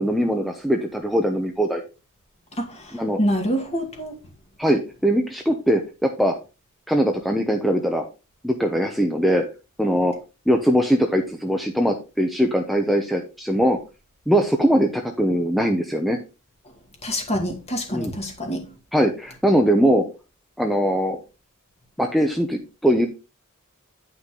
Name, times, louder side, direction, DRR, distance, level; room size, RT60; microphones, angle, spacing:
voice 1, 0.0-1.8 2.9-3.2 4.6-6.3 6.9-8.0 8.4-9.4 9.8-10.1 10.5-13.8 14.3-16.2 17.9-18.1 18.9-20.0 20.6-21.2 22.0-23.1, equal, ahead, 0.8 m, -21 dB
voice 2, 3.2-4.2 17.0-18.6, equal, 30° left, 2.2 m, -26 dB
9.8 x 5.8 x 3.8 m
head